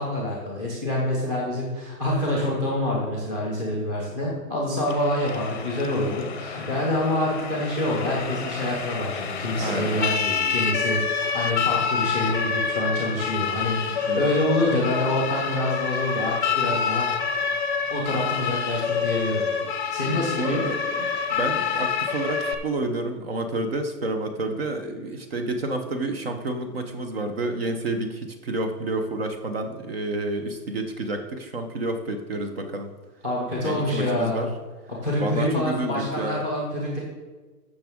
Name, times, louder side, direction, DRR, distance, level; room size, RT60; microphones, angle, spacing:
voice 1, 0.0-17.1 17.9-19.4 19.9-20.6 33.2-34.5 34.9-37.0, left 1 dB, 5° right, -4 dB, 0.7 m, -26 dB
Siren, 4.9-22.5, left 6 dB, 30° left, 0.7 m, -27 dB
voice 2, 9.6-10.2 14.1-14.2 20.0-32.9 33.6-34.5 35.2-36.4, right 2 dB, 40° right, 6 dB, 0.8 m, -29 dB
14.5 x 6.1 x 3.6 m, 1.3 s
hypercardioid pair, 170°, 49 cm